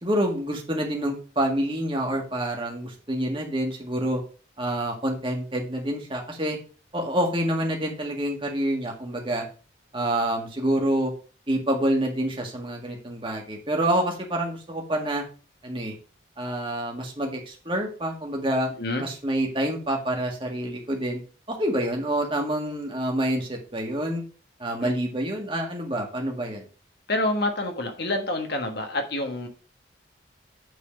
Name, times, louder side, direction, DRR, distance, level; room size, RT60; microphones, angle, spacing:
voice 1, 0.0-4.2 4.6-6.6 6.9-9.5 9.9-11.1 11.5-15.2 15.6-15.9 16.4-18.7 19.0-21.2 21.5-24.2 24.6-26.6, right 1 dB, 25° right, 1 dB, 1.8 m, -27 dB
voice 2, 27.1-29.5, left 2 dB, 55° left, 5 dB, 1.4 m, -27 dB
8.2 x 4.2 x 5.2 m, 0.37 s
head